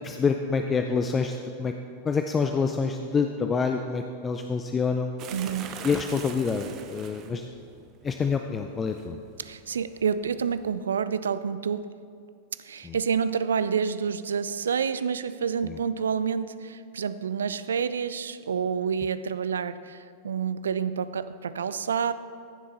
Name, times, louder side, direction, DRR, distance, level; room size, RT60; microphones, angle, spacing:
voice 1, 0.0-1.7 2.0-5.1 5.8-7.5 8.0-9.2 12.8-13.0 15.6-15.8, left 5 dB, 20° left, 5 dB, 0.5 m, -27 dB
sound 1, 5.2-10.8, right 8 dB, 35° right, 0.8 m, -44 dB
voice 2, 5.3-5.8 9.4-12.0 12.6-22.1, right 6 dB, 70° right, 14 dB, 0.4 m, -28 dB
15.5 x 7.4 x 4.0 m, 2.4 s
figure-of-eight pair, 90°, 0 cm